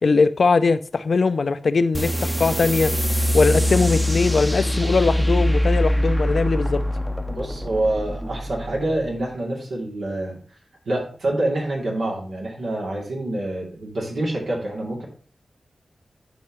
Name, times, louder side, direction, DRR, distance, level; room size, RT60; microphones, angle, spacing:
voice 1, 0.0-2.9 3.3-6.8, left 4 dB, 70° left, 0.5 m, -20 dB
sound 1, 1.9-9.1, equal, 5° right, 0.7 m, -23 dB
voice 2, 7.3-10.4 10.8-15.0, right 1 dB, 90° right, 2.7 m, -26 dB
11.5 x 4.6 x 3.1 m
cardioid pair, 55°, 0 cm